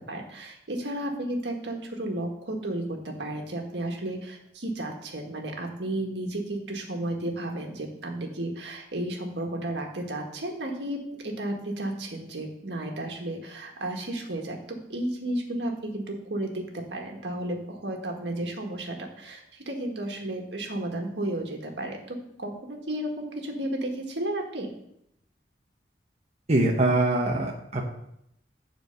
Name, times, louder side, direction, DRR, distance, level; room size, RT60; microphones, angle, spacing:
voice 1, 0.1-11.0 11.2-24.7, right 1 dB, 75° right, 1 dB, 1.7 m, -33 dB
voice 2, 26.5-27.9, right 2 dB, 40° right, -1 dB, 1.0 m, -23 dB
9.2 x 4.5 x 6.7 m, 0.77 s
head